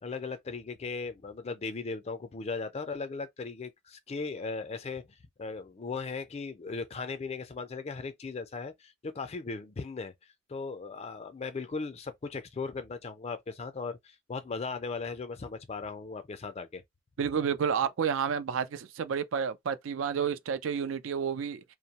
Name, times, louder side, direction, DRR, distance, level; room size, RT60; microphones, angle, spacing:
voice 1, 0.0-10.1 10.5-16.8, left 4 dB, 35° left, 0.4 m, -37 dB
voice 2, 17.2-21.6, right 7 dB, 80° right, 0.4 m, -30 dB
2.6 x 2.0 x 2.8 m
head